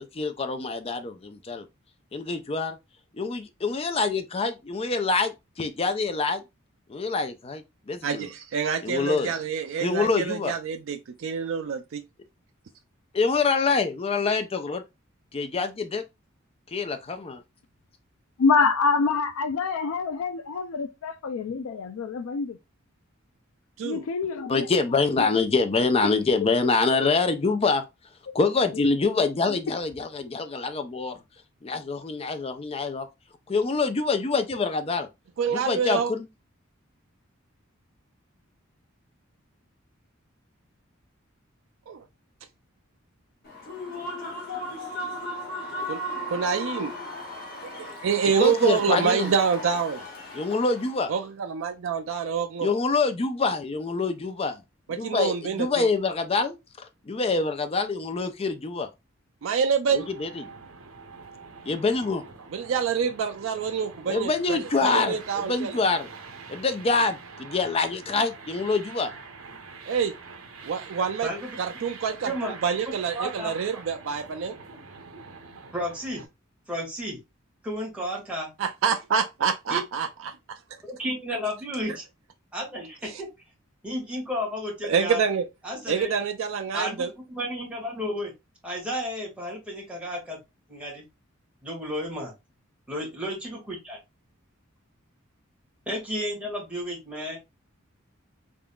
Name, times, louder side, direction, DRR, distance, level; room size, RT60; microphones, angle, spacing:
voice 1, 0.0-1.6 2.1-2.8 3.2-6.4 6.9-8.3 8.8-9.3 9.8-10.5 13.1-14.8 15.3-16.0 16.7-17.4 24.5-27.8 28.3-31.2 31.6-33.1 33.5-35.1 35.5-36.3 48.4-49.3 50.3-51.1 52.6-54.6 54.9-58.9 59.9-60.4 61.7-62.2 64.1-66.1 66.5-69.1, left 4 dB, 30° left, 0.5 m, -26 dB
voice 2, 8.0-12.0 23.8-24.1 35.4-36.1 41.9-42.0 45.9-46.0 46.3-46.9 47.6-50.0 51.1-52.7 54.9-55.9 59.4-60.1 62.5-65.8 69.9-70.1 70.6-71.3 71.6-74.6 78.6-80.6 83.0-83.2 84.8-85.5 85.9-87.1, right 6 dB, 70° right, 0.4 m, -27 dB
voice 3, 18.4-22.6 23.8-24.7 25.2-25.4 28.3-28.4, left 4 dB, 85° left, 0.4 m, -26 dB
Human voice / Cheering / Applause, 43.4-51.1, left 1 dB, 50° left, 1.5 m, -36 dB
sound 1, 59.9-76.3, right 4 dB, 85° right, 0.8 m, -45 dB
voice 4, 71.2-71.6 72.2-72.5 73.2-73.5 74.7-74.8 75.7-76.2 76.7-77.2 77.6-78.5 79.7-79.8 80.8-82.0 82.5-83.3 83.8-85.2 85.6-86.1 86.7-87.0 87.3-88.3 88.6-90.4 90.7-91.0 91.6-92.3 92.9-94.0 95.9-97.4, equal, 5° right, 1.8 m, -32 dB
3.8 x 3.6 x 2.3 m
head